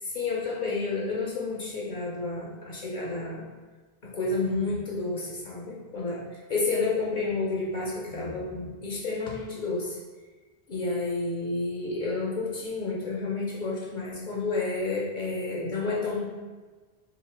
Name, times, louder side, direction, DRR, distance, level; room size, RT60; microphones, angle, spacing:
voice 1, 0.1-3.5 4.0-10.0 10.7-16.2, left 3 dB, 55° left, -4 dB, 0.7 m, -30 dB
3.0 x 2.6 x 4.2 m, 1.3 s
omnidirectional pair, 1.0 m